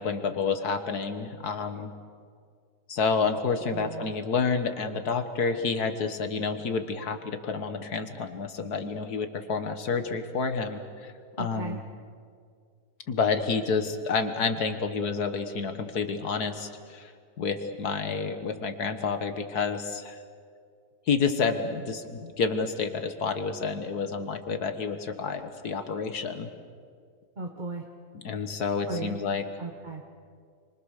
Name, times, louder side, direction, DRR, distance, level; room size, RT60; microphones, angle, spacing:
voice 1, 0.0-1.9 2.9-11.1 11.4-11.8 13.1-17.1 17.4-20.2 21.1-26.5 28.1-29.4, left 5 dB, 65° left, 8 dB, 2.0 m, -29 dB
voice 2, 3.7-4.1 11.4-11.8 27.4-27.9 28.9-29.2 29.6-30.2, right 3 dB, 30° right, 2 dB, 1.2 m, -36 dB
27.5 x 25.5 x 6.6 m, 2.2 s
omnidirectional pair, 1.8 m